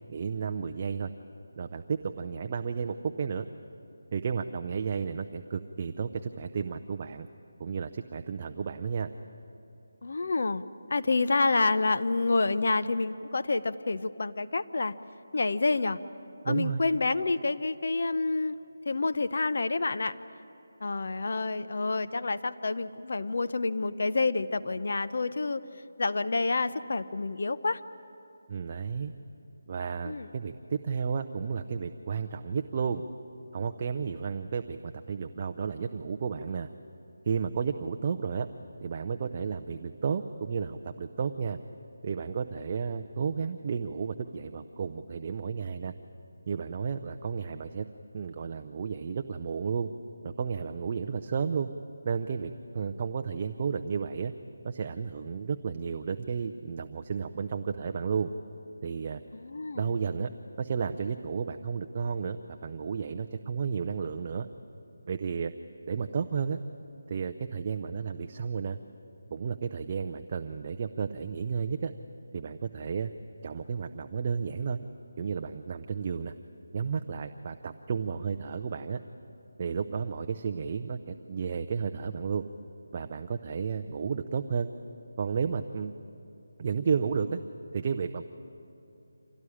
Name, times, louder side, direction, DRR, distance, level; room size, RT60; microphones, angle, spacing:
voice 1, 0.1-1.1 1.6-3.5 4.1-7.3 7.6-9.1 16.4-16.8 28.5-29.1 29.7-33.0 33.5-36.7 37.2-38.5 38.8-41.6 42.0-45.9 46.5-47.9 48.1-49.9 50.2-51.7 52.0-54.3 54.6-58.3 58.8-59.2 59.7-60.3 60.6-64.5 65.1-65.5 65.9-66.6 67.1-68.8 69.3-71.9 72.3-73.1 73.4-74.8 75.2-76.3 76.7-79.0 79.6-82.4 82.9-84.7 85.2-85.9 86.6-87.4 87.7-88.2, right 6 dB, 25° right, 6 dB, 0.6 m, -32 dB
voice 2, 10.0-10.6 10.9-14.9 15.3-16.0 16.4-18.6 18.9-20.1 20.8-25.6 26.0-27.8 30.0-30.3 59.3-59.9, left 3 dB, 55° left, 12 dB, 0.8 m, -28 dB
26.0 x 17.5 x 9.9 m, 2.8 s
figure-of-eight pair, 175°, 0 cm